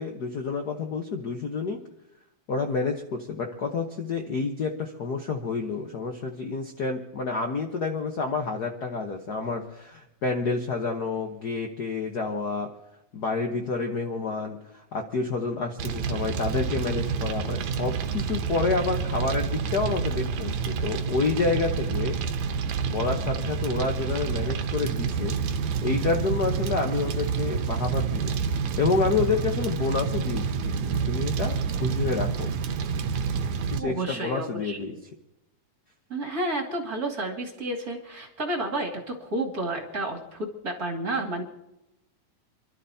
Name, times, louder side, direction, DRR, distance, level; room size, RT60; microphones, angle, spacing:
voice 1, 0.0-1.8 2.5-12.7 13.1-22.2 22.8-25.3 25.8-28.3 28.8-32.5 33.7-34.9, left 4 dB, 75° left, 3 dB, 0.9 m, -29 dB
Fire, 15.8-33.8, right 6 dB, 75° right, 2.2 m, -28 dB
voice 2, 33.7-35.0 36.1-41.4, right 1 dB, 30° right, 1 dB, 2.4 m, -31 dB
28.5 x 12.5 x 2.8 m, 0.89 s
omnidirectional pair, 3.4 m